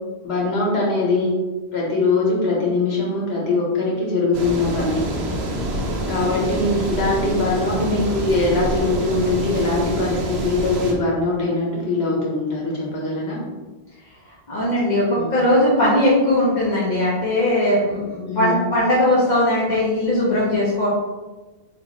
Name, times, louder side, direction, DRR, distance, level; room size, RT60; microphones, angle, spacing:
voice 1, 0.2-1.4 1.7-5.1 6.1-13.4 15.1-15.3 18.2-18.6, left 2 dB, 75° left, -3 dB, 1.4 m, -22 dB
sound 1, 4.3-10.9, right 1 dB, 75° right, 1.0 m, -26 dB
voice 2, 14.5-20.9, left 1 dB, 45° left, -8 dB, 1.0 m, -19 dB
3.8 x 2.6 x 4.2 m, 1.2 s
omnidirectional pair, 1.1 m